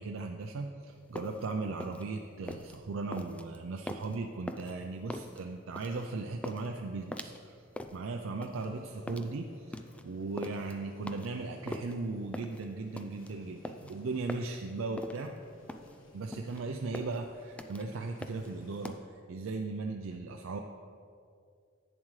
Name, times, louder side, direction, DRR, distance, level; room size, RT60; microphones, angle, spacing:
voice 1, 0.0-7.6 7.9-15.3 16.1-19.0 19.3-20.6, right 3 dB, 90° right, 3 dB, 0.5 m, -37 dB
sound 1, 0.9-19.0, left 1 dB, 5° left, 0.3 m, -44 dB
sound 2, 8.5-18.9, left 1 dB, 80° left, 1.2 m, -58 dB
11.0 x 8.7 x 3.2 m, 2.3 s
head